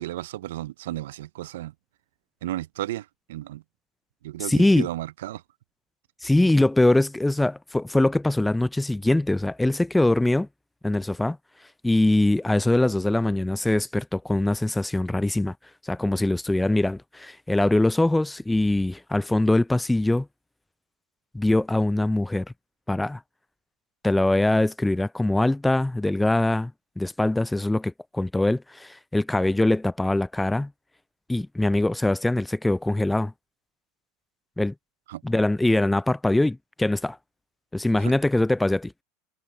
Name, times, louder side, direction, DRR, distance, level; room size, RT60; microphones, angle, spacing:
voice 1, 0.0-1.7 2.4-3.6 4.2-5.4 35.1-35.2 38.0-38.1, right 15 dB, 75° right, 0.5 m, -33 dB
voice 2, 4.5-4.9 6.2-10.5 10.8-11.4 11.8-15.5 15.8-20.3 21.3-22.5 22.9-23.2 24.0-30.7 31.3-33.3 34.6-34.7 35.2-37.2 37.7-38.9, left 1 dB, 5° left, 0.3 m, -22 dB
hypercardioid pair, 95°, 0 cm